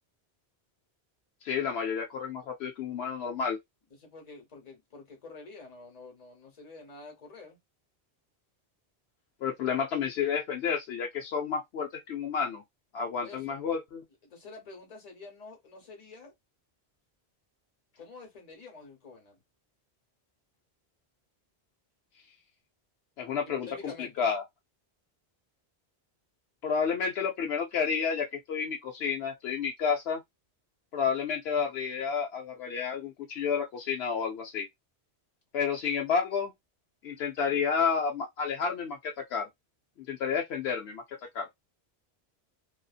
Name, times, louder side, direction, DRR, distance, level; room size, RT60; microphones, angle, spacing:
voice 1, 1.4-3.6 9.4-12.6 12.9-14.0 23.2-23.7 24.0-24.4 26.6-30.2 30.9-34.7 35.5-36.5 37.0-39.5 40.0-41.5, left 6 dB, 75° left, 0.8 m, -30 dB
voice 2, 4.0-7.6 13.2-13.6 14.2-16.3 18.0-19.4 23.4-24.3, left 3 dB, 40° left, 1.0 m, -48 dB
2.6 x 2.4 x 2.3 m
omnidirectional pair, 1.1 m